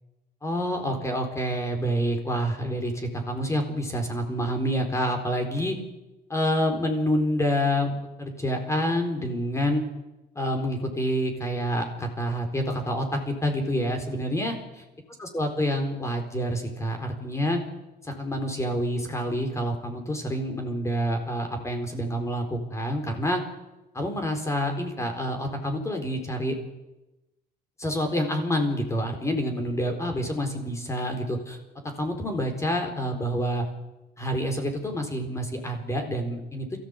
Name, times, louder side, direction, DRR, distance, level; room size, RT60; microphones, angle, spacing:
voice 1, 0.4-5.8 6.3-9.8 10.3-14.6 15.3-17.6 18.0-23.4 23.9-26.6 27.8-31.6 32.0-33.6 34.2-36.7, equal, 15° left, 4 dB, 4.4 m, -27 dB
22.5 x 15.0 x 8.4 m, 1.0 s
cardioid pair, 110°, 17 cm